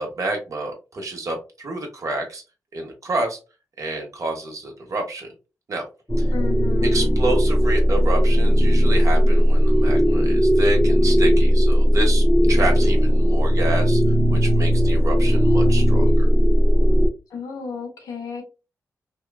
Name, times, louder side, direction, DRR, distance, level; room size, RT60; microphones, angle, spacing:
voice 1, 0.0-2.4 2.7-3.4 3.8-5.3 5.7-5.9 6.2-6.3 6.8-14.0 14.3-16.3, right 2 dB, 60° right, 1.0 m, -28 dB
sound 1, 6.1-17.1, equal, 5° left, 0.6 m, -17 dB
voice 2, 6.3-7.1 17.3-18.4, left 5 dB, 85° left, 0.8 m, -32 dB
2.8 x 2.3 x 2.3 m
cardioid pair, 50°, 6 cm